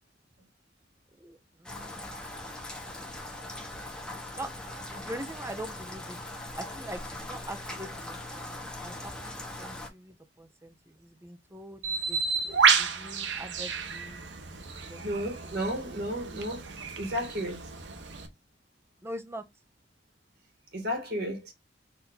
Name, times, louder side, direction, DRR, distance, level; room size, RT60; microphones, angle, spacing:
voice 1, 1.2-2.2 2.7-3.2 4.3-4.5 4.8-6.2 6.6-8.2 8.5-8.6 8.8-14.2 14.8-15.0 15.4-15.7 19.0-19.4, right 1 dB, 15° right, 0.7 m, -43 dB
Rain, 1.6-9.9, left 1 dB, 5° left, 1.1 m, -40 dB
Bird, 11.8-18.3, right 5 dB, 85° right, 1.0 m, -30 dB
voice 2, 15.0-16.6 17.0-17.6 20.7-21.5, equal, 60° right, 1.8 m, -32 dB
4.3 x 2.7 x 3.8 m
head